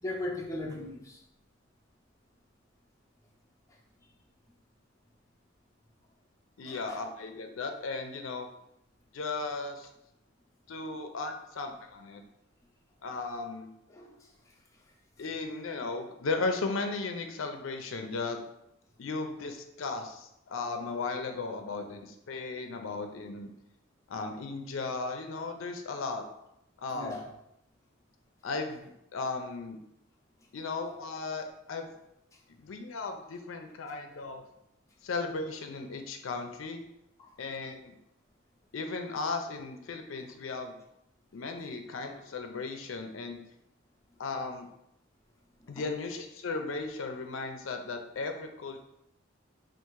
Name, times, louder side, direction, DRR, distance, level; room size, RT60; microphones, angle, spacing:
voice 1, 0.0-1.2 6.7-7.0 13.9-14.2 26.9-27.2 37.2-37.3 45.6-45.7, left 1 dB, 15° left, -2 dB, 0.6 m, -38 dB
voice 2, 6.6-8.5 9.1-9.9 10.7-12.2 13.0-13.7 15.2-18.4 19.0-23.5 24.1-26.2 26.8-27.2 28.4-29.8 30.5-31.9 32.6-34.4 35.0-36.8 37.4-38.0 38.7-40.8 41.3-43.4 44.2-44.7 45.7-48.8, left 3 dB, 80° left, 5 dB, 0.5 m, -36 dB
3.6 x 2.5 x 4.5 m, 0.81 s
head